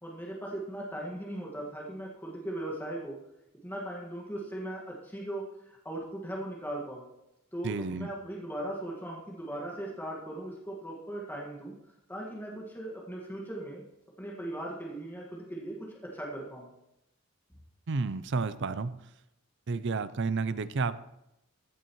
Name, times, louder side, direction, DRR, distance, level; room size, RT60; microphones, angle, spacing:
voice 1, 0.0-3.2 3.6-7.1 7.5-11.7 12.1-13.8 14.2-16.7, right 1 dB, 10° left, -3 dB, 1.8 m, -38 dB
voice 2, 7.6-8.1 17.9-18.9 19.7-20.9, right 4 dB, 60° right, 14 dB, 0.6 m, -31 dB
15.0 x 9.2 x 3.1 m, 0.85 s
head